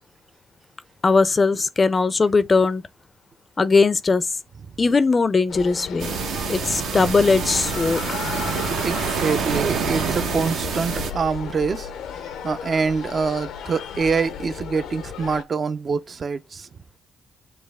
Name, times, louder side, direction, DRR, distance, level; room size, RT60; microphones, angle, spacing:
voice 1, 1.0-2.8 3.6-4.3 4.8-6.1 6.5-8.0, left 4 dB, 30° left, 0.4 m, -19 dB
sound 1, 5.5-15.4, left 8 dB, 80° left, 0.6 m, -34 dB
sound 2, 6.0-11.1, right 6 dB, 80° right, 1.0 m, -27 dB
voice 2, 8.7-11.9 12.2-16.7, right 5 dB, 45° right, 0.5 m, -25 dB
6.4 x 2.3 x 3.4 m
cardioid pair, 90°, 0 cm